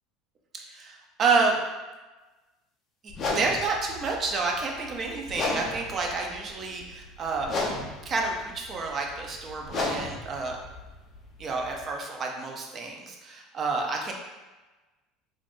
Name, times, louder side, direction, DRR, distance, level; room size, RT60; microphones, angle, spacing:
voice 1, 0.5-1.6 3.0-7.5 8.0-10.6 11.4-14.1, right 4 dB, 30° right, 1 dB, 0.5 m, -29 dB
sound 1, 3.1-11.9, left 2 dB, 30° left, 0.6 m, -35 dB
5.2 x 2.5 x 2.5 m, 1.2 s
cardioid pair, 160°, 0 cm